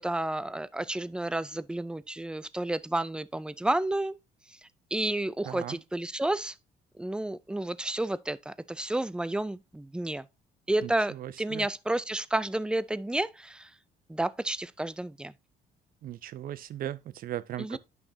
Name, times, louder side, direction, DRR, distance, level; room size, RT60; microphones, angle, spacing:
voice 1, 0.0-4.2 4.9-6.5 7.0-10.3 10.7-13.7 14.1-15.3 17.6-17.8, right 1 dB, 5° right, 0.4 m, -31 dB
voice 2, 5.4-5.8 10.8-11.7 16.0-17.8, right 12 dB, 60° right, 0.6 m, -38 dB
10.5 x 6.0 x 2.7 m
cardioid pair, 110°, 17 cm